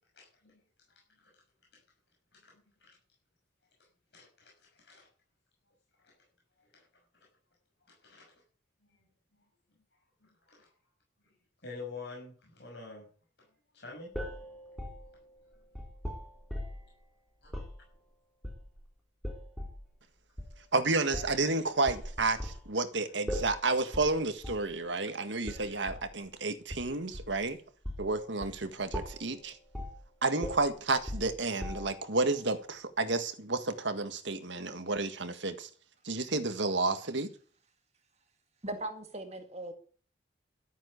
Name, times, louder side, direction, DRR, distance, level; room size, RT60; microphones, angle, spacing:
voice 1, 0.1-0.6 1.2-1.3 1.7-1.8 2.3-3.0 4.1-5.1 6.0-6.1 6.7-6.8 7.9-8.3 9.0-9.1 10.2-10.7 11.6-13.0 13.7-14.1 17.4-17.5, left 4 dB, 60° left, 6.2 m, -48 dB
sound 1, 14.1-16.9 17.5-17.8 18.4-18.9 19.2-19.8 20.4-20.6 21.1-21.5 21.9-22.7 23.3-23.6 23.9-24.2 24.4-24.7 25.5-26.1 26.7-27.5 27.8-28.1 28.4-28.6 28.9-29.3 29.7-30.0 30.4-32.1, equal, ahead, 3.6 m, -39 dB
voice 2, 20.7-27.6 28.0-29.6 30.2-35.7 36.0-37.3, right 3 dB, 75° right, 1.7 m, -31 dB
voice 3, 38.6-39.7, right 1 dB, 35° right, 1.9 m, -39 dB
13.0 x 9.1 x 8.2 m
head